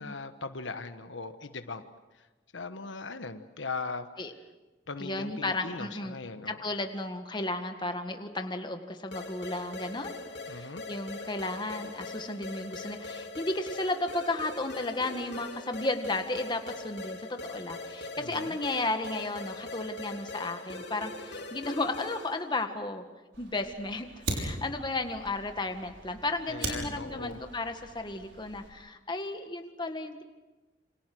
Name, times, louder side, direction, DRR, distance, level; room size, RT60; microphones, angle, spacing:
voice 1, 0.0-1.8 2.1-2.3 2.5-4.1 4.9-6.7 10.5-10.8 18.2-18.6 26.5-27.4, left 4 dB, 85° left, 9 dB, 1.3 m, -39 dB
voice 2, 5.0-6.1 6.5-10.1 10.5-23.0 23.4-30.2, left 2 dB, 25° left, 6 dB, 1.8 m, -34 dB
sound 1, 9.1-22.4, left 2 dB, 65° left, 3.0 m, -41 dB
Fire, 23.3-28.7, right 2 dB, 75° right, 6.1 m, -40 dB
28.5 x 26.0 x 6.2 m, 1.2 s
head